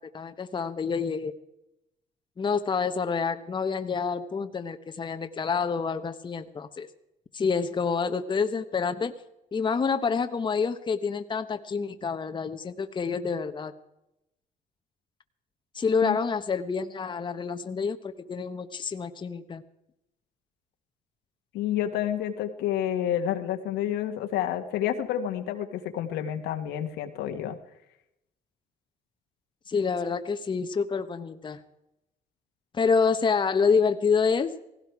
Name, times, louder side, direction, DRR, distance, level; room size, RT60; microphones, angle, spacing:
voice 1, 0.1-1.3 2.4-6.9 7.3-9.1 9.5-13.7 15.7-19.6 29.7-31.6 32.7-34.6, left 5 dB, 25° left, 8 dB, 1.1 m, -27 dB
voice 2, 21.5-27.6, left 10 dB, 90° left, 6 dB, 1.8 m, -29 dB
18.0 x 16.5 x 4.8 m, 0.86 s
cardioid pair, 110°, 17 cm